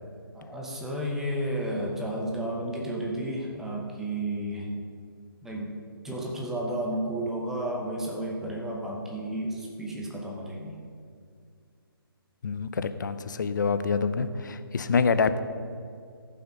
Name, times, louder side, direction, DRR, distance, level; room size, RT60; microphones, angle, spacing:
voice 1, 0.3-4.7 5.4-5.7 6.0-10.8, right 1 dB, 5° right, -2 dB, 0.9 m, -32 dB
voice 2, 12.4-15.4, left 5 dB, 50° left, 11 dB, 0.7 m, -26 dB
14.5 x 5.9 x 5.3 m, 2.3 s
hypercardioid pair, 160°, 13 cm